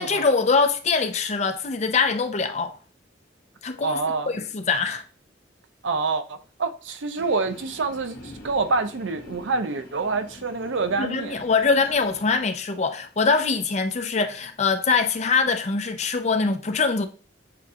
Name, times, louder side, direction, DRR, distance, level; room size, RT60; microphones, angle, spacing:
voice 1, 0.0-2.8 3.6-4.0 4.3-5.0 11.0-17.1, left 4 dB, 35° left, 0.5 m, -23 dB
voice 2, 3.8-4.3 5.8-11.4, right 3 dB, 80° right, 0.6 m, -27 dB
Train, 7.2-12.4, left 1 dB, 55° left, 1.1 m, -45 dB
7.5 x 2.5 x 2.8 m
head